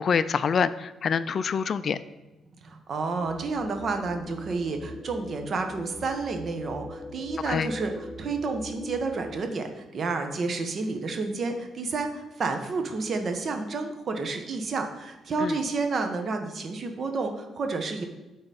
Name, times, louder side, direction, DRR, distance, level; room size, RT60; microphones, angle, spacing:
voice 1, 0.0-2.0 7.5-7.7 15.4-15.6, left 6 dB, 50° left, 14 dB, 0.3 m, -26 dB
voice 2, 2.6-18.0, right 3 dB, 50° right, 5 dB, 1.0 m, -30 dB
sound 1, 3.1-9.4, left 1 dB, 10° left, 2.0 m, -41 dB
8.9 x 4.0 x 4.2 m, 1.1 s
cardioid pair, 90°, 0 cm